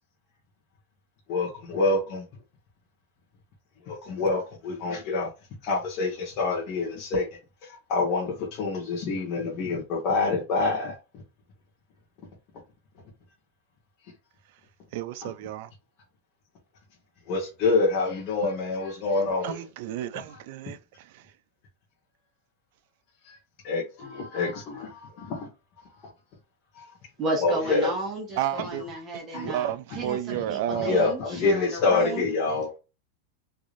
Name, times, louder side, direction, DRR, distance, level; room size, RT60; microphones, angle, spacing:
voice 1, 1.3-2.3 3.9-5.3 5.6-7.3 7.6-10.9 15.2-15.3 17.3-19.7 20.1-20.4 23.3-23.4 23.6-25.5 25.8-26.1 26.7-26.8 27.4-27.9 28.5-28.7 29.3-29.5 29.9-30.2 30.7-32.7, left 3 dB, 40° left, 1.6 m, -27 dB
voice 2, 14.9-15.7 19.4-20.8 28.4-28.8 29.3-31.1, right 12 dB, 55° right, 0.4 m, -31 dB
voice 3, 27.2-32.3, right 2 dB, 25° right, 1.1 m, -33 dB
3.6 x 3.4 x 2.5 m
supercardioid pair, 165°, 0 cm